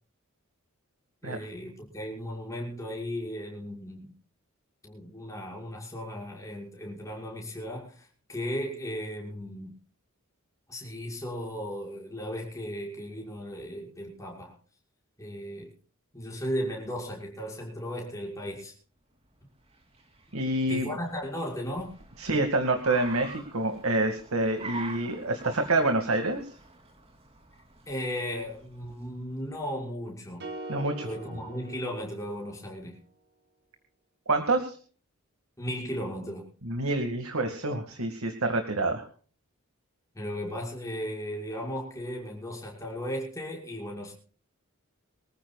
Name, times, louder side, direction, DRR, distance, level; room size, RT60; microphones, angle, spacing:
voice 1, 1.2-4.1 4.8-9.7 10.7-14.5 15.2-15.7 16.1-18.7 20.7-21.9 27.9-30.5 31.0-33.0 35.6-36.5 40.1-44.1, equal, 15° left, 6.2 m, -36 dB
Car, 19.3-29.5, right 3 dB, 25° right, 3.2 m, -47 dB
voice 2, 20.3-20.9 22.2-26.5 30.7-31.1 34.3-34.8 36.6-39.1, right 2 dB, 80° right, 2.2 m, -27 dB
sound 1, 30.4-32.7, right 2 dB, 50° right, 2.4 m, -42 dB
25.0 x 14.5 x 2.4 m
head